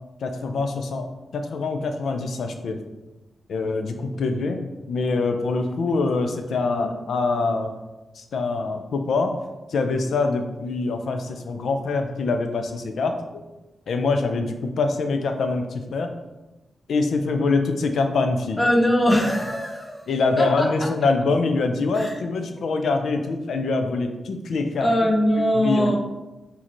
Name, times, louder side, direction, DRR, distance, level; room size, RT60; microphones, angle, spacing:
voice 1, 0.2-1.1 1.3-2.8 3.5-4.6 4.9-7.7 8.2-9.3 9.7-13.4 13.9-16.1 16.9-18.6 20.1-24.9 25.5-26.0, left 3 dB, 80° left, 6 dB, 0.5 m, -24 dB
voice 2, 18.6-20.0 20.4-20.7 21.9-22.1 24.8-26.0, equal, 15° left, 1 dB, 0.7 m, -21 dB
6.3 x 2.8 x 3.0 m, 1.1 s
wide cardioid pair, 145°, 0 cm